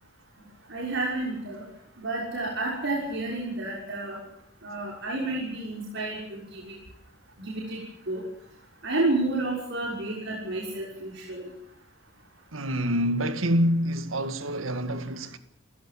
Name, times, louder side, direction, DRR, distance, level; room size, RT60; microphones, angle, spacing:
voice 1, 0.7-1.6 2.0-4.2 4.6-6.7 7.4-8.2 8.8-11.5, right 2 dB, 60° right, 6.2 m, -30 dB
voice 2, 12.5-15.4, equal, 75° right, 1.9 m, -26 dB
28.5 x 15.0 x 7.7 m
head